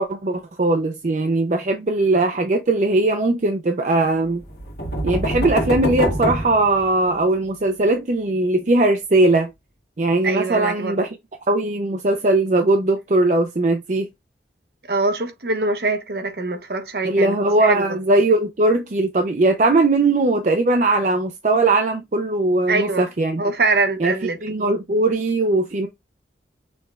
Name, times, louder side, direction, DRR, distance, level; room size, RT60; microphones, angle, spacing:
voice 1, 0.0-4.4 5.0-9.5 10.0-11.2 11.5-14.1 17.0-23.4 24.0-24.1 24.4-25.9, right 2 dB, 45° right, 0.5 m, -19 dB
sound 1, 4.4-7.3, right 1 dB, 65° left, 1.5 m, -25 dB
voice 2, 10.2-11.0 14.9-18.0 22.7-23.0 23.4-24.7, right 3 dB, 60° right, 0.8 m, -23 dB
6.2 x 3.3 x 2.3 m
head